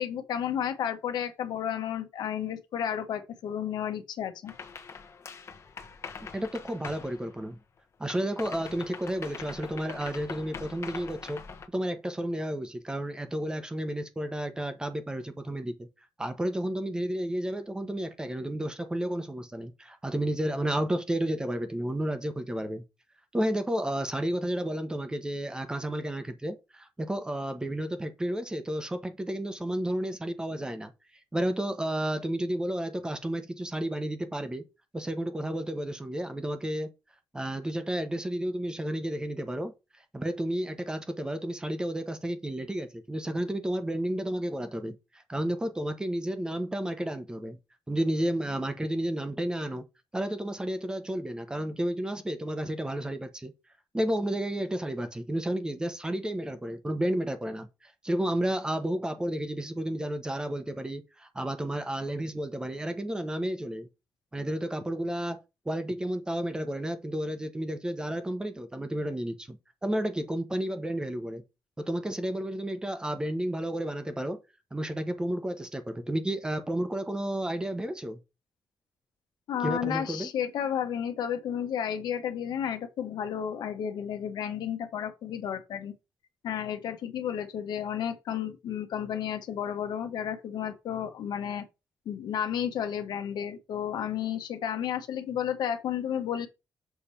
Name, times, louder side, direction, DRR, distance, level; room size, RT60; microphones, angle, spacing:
voice 1, 0.0-4.5 79.5-85.9 86.4-91.6 92.0-96.5, left 9 dB, 85° left, 1.3 m, -32 dB
sound 1, 4.5-7.8 8.1-11.7, left 5 dB, 40° left, 1.1 m, -43 dB
voice 2, 6.2-7.6 8.0-11.4 11.7-15.9 16.2-22.8 23.3-30.9 31.3-34.6 34.9-36.9 37.3-47.6 47.9-49.8 50.1-53.5 53.9-63.9 64.3-65.4 65.6-69.6 69.8-71.4 71.8-74.4 74.7-78.2 79.6-80.3, right 1 dB, 10° right, 0.9 m, -32 dB
6.9 x 3.3 x 5.6 m
cardioid pair, 140°, 7 cm